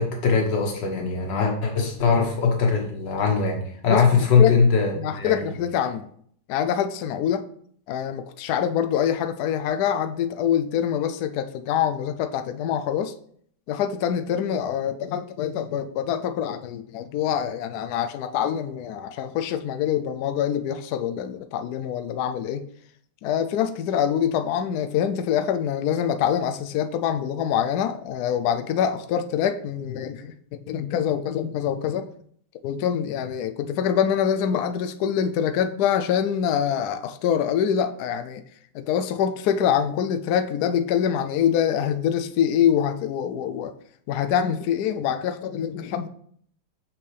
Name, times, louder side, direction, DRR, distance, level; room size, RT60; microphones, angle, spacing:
voice 1, 0.0-5.5, left 5 dB, 65° left, 1 dB, 1.9 m, -21 dB
voice 2, 5.0-6.1 6.5-7.5 7.9-13.1 13.7-22.6 23.2-32.1 32.6-38.4 38.7-43.7 44.1-46.1, left 9 dB, 85° left, 8 dB, 0.8 m, -25 dB
6.1 x 6.0 x 3.3 m, 0.63 s
omnidirectional pair, 2.2 m